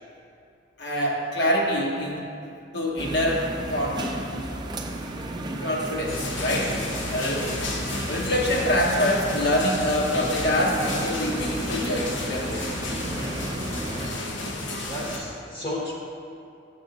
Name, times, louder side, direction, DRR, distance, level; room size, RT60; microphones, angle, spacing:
voice 1, 0.8-2.3 2.7-4.1 5.6-6.8 7.1-7.5 8.1-12.7, left 1 dB, 65° left, -2 dB, 1.0 m, -25 dB
sound 1, 3.0-14.1, right 1 dB, 25° right, 0.5 m, -33 dB
sound 2, 6.1-15.2, left 2 dB, 90° left, 0.8 m, -32 dB
voice 2, 14.9-15.9, left 1 dB, 30° left, -3 dB, 0.9 m, -32 dB
7.3 x 6.0 x 3.9 m, 2.6 s
head